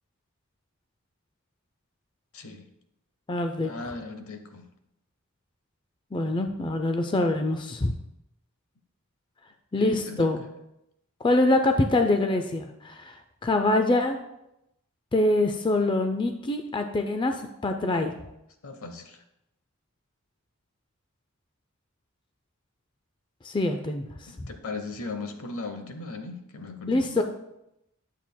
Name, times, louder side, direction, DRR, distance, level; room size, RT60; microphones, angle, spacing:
voice 1, 2.3-2.7 3.6-4.6 9.8-10.3 18.6-19.2 24.2-27.2, left 3 dB, 75° left, 6 dB, 0.9 m, -37 dB
voice 2, 3.3-3.7 6.1-7.9 9.7-10.4 11.2-13.1 13.4-14.2 15.1-18.1 23.4-24.0 24.4-24.5 26.9-27.2, left 2 dB, 20° left, 6 dB, 0.4 m, -24 dB
10.5 x 7.3 x 2.2 m, 0.85 s
head